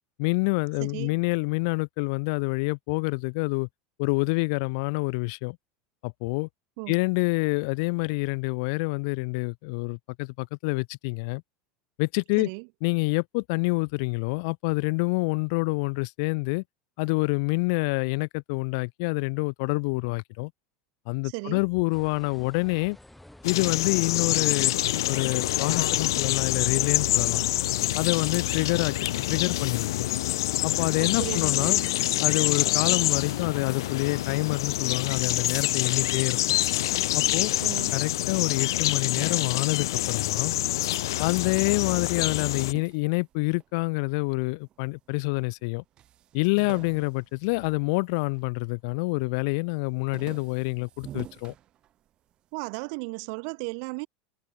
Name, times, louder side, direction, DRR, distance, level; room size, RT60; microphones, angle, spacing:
voice 1, 0.2-3.7 4.0-5.6 6.0-6.5 6.9-11.4 12.0-12.5 12.8-16.6 17.0-20.5 21.1-23.0 23.4-24.7 25.1-27.4 27.9-29.9 30.6-31.8 32.2-36.4 37.1-37.5 37.9-40.5 41.1-45.8 46.3-51.5, left 30 dB, 70° left, 2.2 m, -27 dB
voice 2, 0.8-1.2 6.8-6.9 12.4-12.7 21.2-21.6 31.0-31.9 37.6-37.9 52.5-54.1, right 39 dB, 65° right, 1.7 m, -35 dB
sound 1, 21.9-34.2, left 1 dB, 5° left, 3.3 m, -49 dB
sound 2, 23.4-42.7, left 15 dB, 85° left, 0.7 m, -26 dB
sound 3, 38.7-41.2 41.5-44.0 44.6-45.3 45.6-45.7 46.0-48.6 48.9-49.4 49.7-52.3, right 12 dB, 45° right, 2.5 m, -48 dB
supercardioid pair, 110°, 2 cm